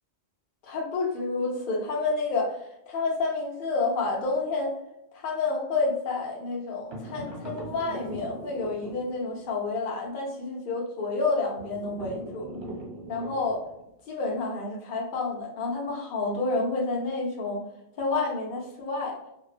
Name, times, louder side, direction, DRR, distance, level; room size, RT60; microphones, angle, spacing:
voice 1, 0.6-4.7 5.1-12.5 13.1-13.6 14.1-17.6 18.0-19.2, left 3 dB, 60° left, -1 dB, 0.6 m, -29 dB
sound 1, 6.9-9.5 11.5-13.8, right 1 dB, 80° right, 1.1 m, -40 dB
2.4 x 2.2 x 2.3 m, 0.83 s
omnidirectional pair, 1.1 m